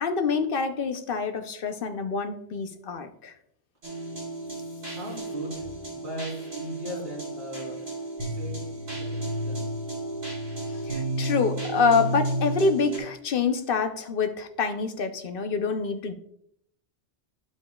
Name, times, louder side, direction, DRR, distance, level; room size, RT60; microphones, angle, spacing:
voice 1, 0.0-3.3 10.9-16.1, left 4 dB, 55° left, 8 dB, 0.9 m, -26 dB
sound 1, 3.8-13.0, right 1 dB, 65° right, 3.7 m, -32 dB
voice 2, 4.8-7.8 8.3-8.6 8.9-9.7, right 1 dB, 45° right, -7 dB, 3.7 m, -38 dB
10.0 x 7.2 x 2.3 m, 0.71 s
omnidirectional pair, 1.1 m